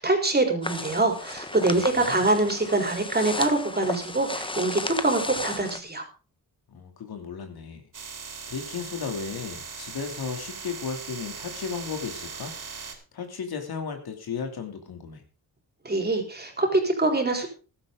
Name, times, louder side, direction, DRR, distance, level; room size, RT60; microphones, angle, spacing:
voice 1, 0.0-6.0 15.8-17.5, right 2 dB, 25° right, 4 dB, 4.3 m, -24 dB
sound 1, 0.6-5.8, left 2 dB, 15° left, 1.3 m, -34 dB
voice 2, 1.7-2.2 6.7-7.8 8.5-12.5 13.1-15.2, left 6 dB, 70° left, 5 dB, 2.9 m, -35 dB
sound 2, 7.9-12.9, right 5 dB, 50° right, 4.0 m, -39 dB
15.0 x 12.0 x 3.8 m, 0.36 s
cardioid pair, 85°, 39 cm